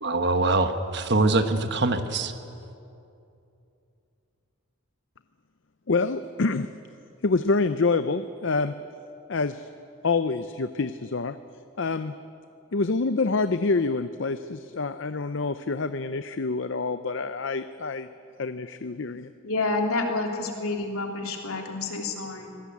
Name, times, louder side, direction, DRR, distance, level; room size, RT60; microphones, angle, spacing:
voice 1, 0.0-2.3, right 2 dB, 50° right, 8 dB, 1.3 m, -23 dB
voice 2, 5.9-6.7 7.2-8.7 9.3-9.7 10.0-11.4 11.8-12.1 12.7-18.1 18.4-19.3, left 3 dB, 60° left, 11 dB, 0.6 m, -26 dB
voice 3, 19.4-22.6, left 3 dB, 85° left, 2 dB, 3.3 m, -29 dB
25.0 x 17.5 x 8.5 m, 2.7 s
head